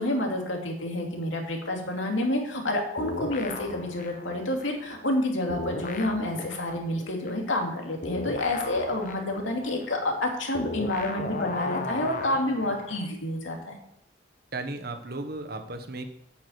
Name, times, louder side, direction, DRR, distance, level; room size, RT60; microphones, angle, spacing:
voice 1, 0.0-13.8, left 1 dB, 90° left, 1 dB, 2.6 m, -29 dB
sound 1, 3.0-5.2 5.5-13.1, left 3 dB, 45° left, 1.0 m, -36 dB
voice 2, 14.5-16.0, right 2 dB, 55° right, 6 dB, 1.3 m, -35 dB
8.8 x 7.2 x 8.2 m, 0.75 s
head